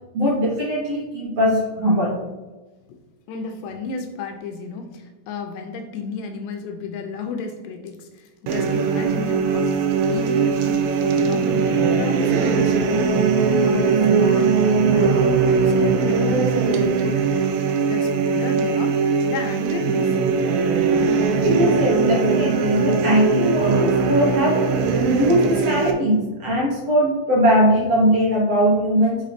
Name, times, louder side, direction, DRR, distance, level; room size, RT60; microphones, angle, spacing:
voice 1, 0.1-2.1 12.4-12.6 21.4-24.6 25.1-29.2, equal, 60° right, -4 dB, 1.8 m, -20 dB
voice 2, 3.3-9.8 10.1-13.1 13.6-17.3 17.8-20.4 21.9-22.0, left 5 dB, 80° left, 4 dB, 2.2 m, -33 dB
sound 1, 8.5-25.9, right 5 dB, 85° right, 2.6 m, -20 dB
6.4 x 3.9 x 5.0 m, 1.2 s
omnidirectional pair, 4.1 m